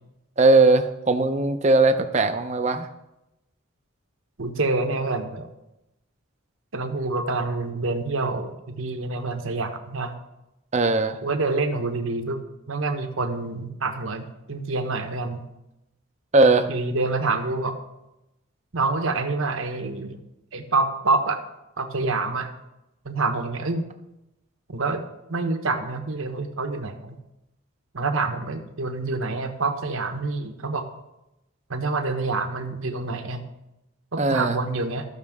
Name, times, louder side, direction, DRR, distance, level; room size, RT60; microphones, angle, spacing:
voice 1, 0.4-2.9 10.7-11.2 16.3-16.7 34.2-34.6, right 3 dB, 30° right, 8 dB, 0.6 m, -19 dB
voice 2, 4.4-5.5 6.7-10.1 11.2-12.4 12.7-15.5 16.7-17.8 18.7-20.2 20.5-21.4 21.8-22.5 23.0-23.9 24.7-25.0 25.3-27.2 27.9-30.8 31.7-33.4 34.1-35.1, right 3 dB, 70° right, 6 dB, 1.0 m, -27 dB
14.5 x 6.4 x 3.6 m, 0.92 s
head